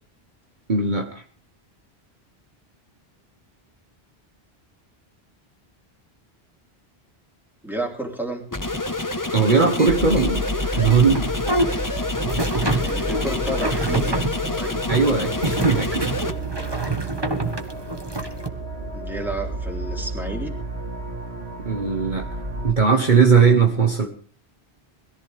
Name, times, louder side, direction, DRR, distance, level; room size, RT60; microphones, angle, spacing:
voice 1, 0.7-1.2 9.3-11.2 11.6-11.9 14.9-16.1 21.6-22.3 22.6-24.1, right 5 dB, 50° right, 4 dB, 1.4 m, -19 dB
voice 2, 7.6-8.4 12.8-14.2 14.5-14.8 18.9-20.5, right 1 dB, ahead, 1 dB, 3.5 m, -31 dB
sound 1, 8.5-16.3, left 2 dB, 20° left, 1.2 m, -28 dB
sound 2, 9.9-22.7, right 1 dB, 85° right, 2.5 m, -31 dB
sound 3, 11.0-18.5, right 2 dB, 25° right, 1.6 m, -27 dB
21.5 x 14.0 x 3.5 m, 0.43 s
omnidirectional pair, 1.1 m